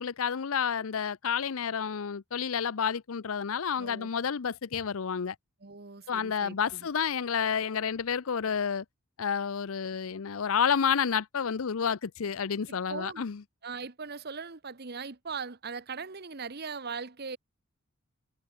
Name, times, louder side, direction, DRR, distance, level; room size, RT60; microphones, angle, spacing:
voice 1, 0.0-5.4 6.1-8.8 9.2-13.4, left 7 dB, 70° left, 0.6 m, -30 dB
voice 2, 3.8-4.1 5.6-6.9 12.7-13.2 13.6-17.4, right 5 dB, 45° right, 1.2 m, -40 dB
head